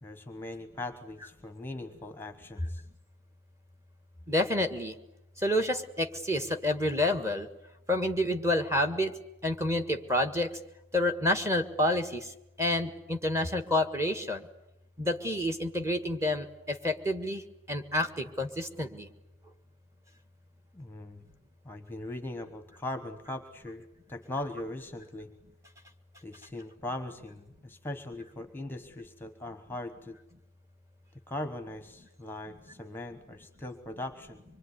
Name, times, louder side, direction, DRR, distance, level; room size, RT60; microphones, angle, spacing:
voice 1, 0.0-2.8 20.7-21.2 21.6-25.3 26.2-30.1 31.3-34.4, left 1 dB, 10° left, 8 dB, 1.2 m, -40 dB
voice 2, 4.3-5.0 5.4-7.5 7.9-9.1 9.4-10.5 10.9-14.5 15.0-17.4 17.7-19.1, left 1 dB, 15° right, 6 dB, 1.6 m, -29 dB
25.5 x 23.0 x 9.7 m, 0.87 s
head